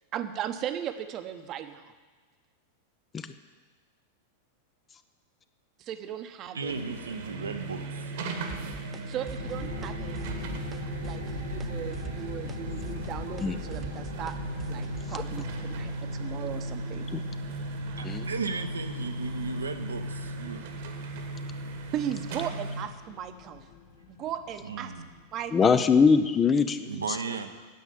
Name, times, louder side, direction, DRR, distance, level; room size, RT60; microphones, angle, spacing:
voice 1, 0.1-1.8 5.8-6.7 9.1-10.2 11.0-14.4 14.7-17.1 21.9-23.7 24.1-24.9 25.3-25.5, right 10 dB, 35° right, 9 dB, 0.9 m, -37 dB
voice 2, 6.5-8.1 18.0-20.7 24.6-25.1 26.9-27.7, right 5 dB, 75° right, 7 dB, 0.9 m, -35 dB
sound 1, 6.6-22.8, right 2 dB, 55° right, 1.4 m, -37 dB
sound 2, 8.5-9.0 9.3-9.9 10.2-10.8 11.0-11.7 11.9-15.6, right 4 dB, 20° right, 0.5 m, -43 dB
sound 3, 9.4-26.5, left 4 dB, 70° left, 1.9 m, -42 dB
voice 3, 25.5-27.2, left 5 dB, 20° left, 11 dB, 0.7 m, -23 dB
9.4 x 8.3 x 9.3 m, 1.4 s
figure-of-eight pair, 90°, 0 cm